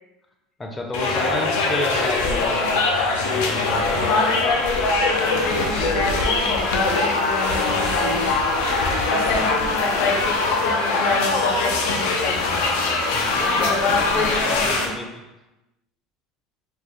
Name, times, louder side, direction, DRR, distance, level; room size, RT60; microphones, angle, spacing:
voice 1, 0.6-2.7 3.3-4.1 9.3-9.5 13.1-15.3, left 2 dB, 15° left, 2 dB, 0.5 m, -31 dB
sound 1, 0.9-14.9, left 3 dB, 90° left, 0.5 m, -22 dB
voice 2, 4.0-8.3 9.1-12.6 13.4-14.9, left 3 dB, 60° left, 0 dB, 0.8 m, -27 dB
4.4 x 2.3 x 3.2 m, 1.0 s
cardioid pair, 140°, 0 cm